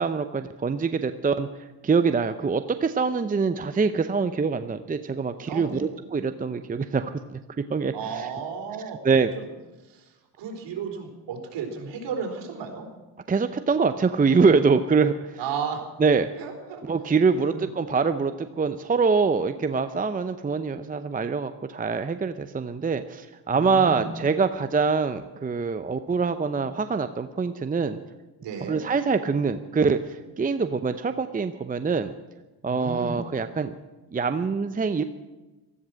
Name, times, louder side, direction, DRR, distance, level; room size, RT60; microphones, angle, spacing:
voice 1, 0.0-1.5 1.8-7.4 7.7-8.3 9.0-9.3 13.3-15.4 16.0-16.3 16.9-28.0 28.7-32.1 32.6-33.7 34.1-35.0, right 5 dB, 20° right, 10 dB, 0.7 m, -24 dB
voice 2, 5.5-5.8 7.9-9.0 9.3-9.5 9.9-10.1 10.4-12.8 15.4-15.8 16.4-16.8 17.3-17.6 23.5-24.1 28.4-28.8 32.6-33.2, right 6 dB, 60° right, 2 dB, 4.0 m, -33 dB
16.0 x 14.0 x 6.3 m, 1.1 s
supercardioid pair, 80°, 47 cm